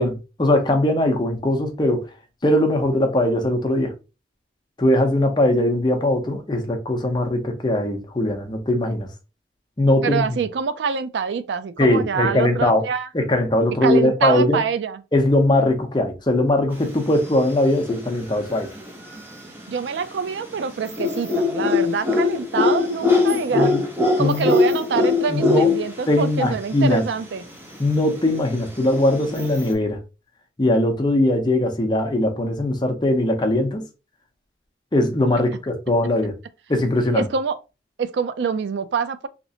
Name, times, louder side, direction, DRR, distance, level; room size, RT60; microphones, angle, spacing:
voice 1, 0.0-2.0 2.4-3.9 4.8-9.1 9.8-10.3 11.8-12.8 13.1-14.6 15.1-18.7 23.5-23.9 24.2-24.6 25.3-25.7 26.1-27.1 27.8-30.0 30.6-33.8 34.9-36.3 36.7-37.3, left 1 dB, 25° left, 0.6 m, -20 dB
voice 2, 10.0-13.1 13.8-15.0 19.7-23.7 24.2-27.4 37.1-37.6 38.0-39.3, right 6 dB, 80° right, 0.4 m, -25 dB
sound 1, 17.0-17.5 17.8-19.8 20.2-26.2 26.5-26.6 26.7-26.9 27.4-29.7, left 3 dB, 10° right, 0.7 m, -22 dB
3.1 x 2.9 x 2.7 m
head